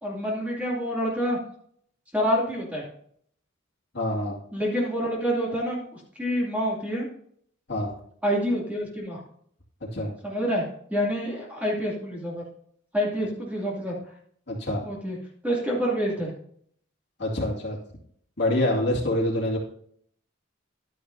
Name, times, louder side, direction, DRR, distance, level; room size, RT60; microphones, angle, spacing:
voice 1, 0.0-1.4 2.1-2.8 4.5-7.1 8.2-9.2 10.2-10.6 10.9-12.4 12.9-13.9 14.8-15.2 15.4-16.3, equal, 5° right, -4 dB, 2.5 m, -27 dB
voice 2, 3.9-4.3 7.7-7.9 9.9-10.1 14.5-14.8 17.2-17.8 18.4-19.6, left 1 dB, 55° left, -2 dB, 2.2 m, -25 dB
11.5 x 9.9 x 2.7 m, 0.64 s
head